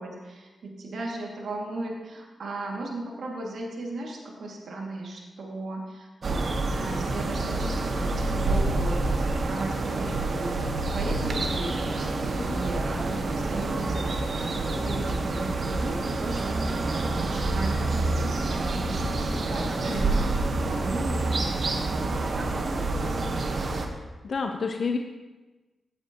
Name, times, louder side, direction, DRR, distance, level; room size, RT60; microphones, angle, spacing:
voice 1, 0.0-14.1 14.4-23.7, right 2 dB, 75° right, -1 dB, 2.2 m, -36 dB
sound 1, 6.2-23.9, right 2 dB, 60° right, 1.2 m, -27 dB
voice 2, 12.4-12.7 19.9-20.5 24.2-25.0, left 5 dB, 60° left, 4 dB, 0.8 m, -31 dB
16.5 x 9.0 x 3.0 m, 1.2 s
cardioid pair, 65°, 0 cm